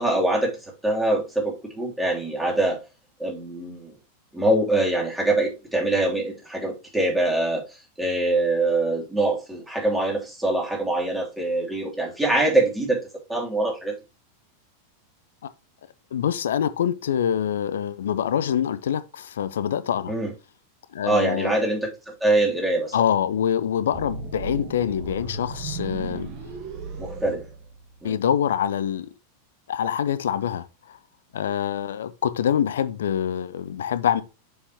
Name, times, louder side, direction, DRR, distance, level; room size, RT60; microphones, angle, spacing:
voice 1, 0.0-2.8 3.2-3.9 4.3-13.0 13.3-14.0 20.1-20.3 21.0-22.9 27.0-27.4 28.0-28.2, right 2 dB, 5° right, 3.1 m, -24 dB
voice 2, 16.1-20.1 20.9-21.5 22.9-26.3 28.0-29.1 29.7-31.0 31.3-34.2, left 9 dB, 60° left, 0.6 m, -25 dB
sound 1, 23.9-28.2, right 4 dB, 40° right, 1.7 m, -36 dB
7.1 x 6.7 x 2.9 m
figure-of-eight pair, 90°, 0 cm